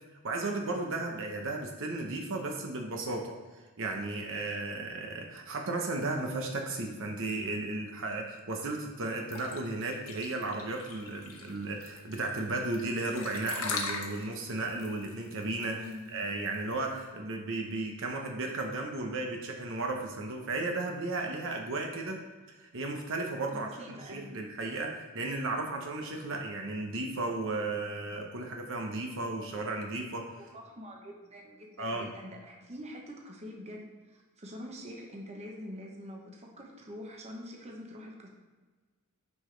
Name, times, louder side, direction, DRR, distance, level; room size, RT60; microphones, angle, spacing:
voice 1, 0.2-3.4 3.8-15.8 16.1-22.2 22.6-30.3 31.8-32.1, right 2 dB, 60° right, 2 dB, 1.0 m, -34 dB
sound 1, 9.3-17.0, left 4 dB, 70° left, 1.2 m, -40 dB
voice 2, 23.5-24.4 30.4-38.3, equal, 30° right, 0 dB, 1.0 m, -45 dB
9.6 x 5.0 x 3.3 m, 1.3 s
head